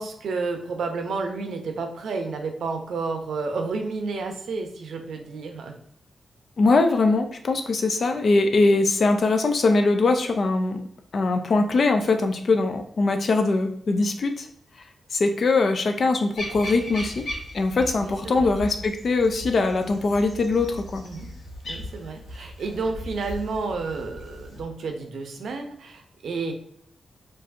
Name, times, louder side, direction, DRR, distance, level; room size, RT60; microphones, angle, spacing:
voice 1, 0.0-5.8 18.0-18.5 21.0-21.3 21.6-26.5, right 4 dB, 80° right, 4 dB, 0.6 m, -31 dB
voice 2, 6.6-10.8 11.1-14.5 15.1-17.3 17.5-21.0, left 3 dB, 55° left, 6 dB, 0.5 m, -22 dB
sound 1, 16.4-24.6, left 1 dB, 80° left, 1.4 m, -38 dB
4.6 x 2.6 x 2.6 m, 0.68 s
cardioid pair, 95°, 0 cm